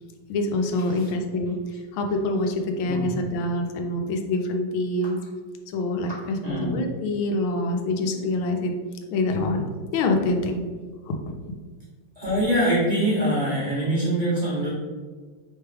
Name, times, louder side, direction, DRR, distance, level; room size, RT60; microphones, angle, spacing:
voice 1, 0.3-1.6 1.9-5.2 5.7-8.8 9.1-10.6 11.1-11.2, left 2 dB, 90° left, 3 dB, 1.5 m, -25 dB
voice 2, 6.4-6.7 12.2-14.7, right 1 dB, 25° right, -8 dB, 1.2 m, -24 dB
3.6 x 3.3 x 4.4 m, 1.5 s
omnidirectional pair, 2.2 m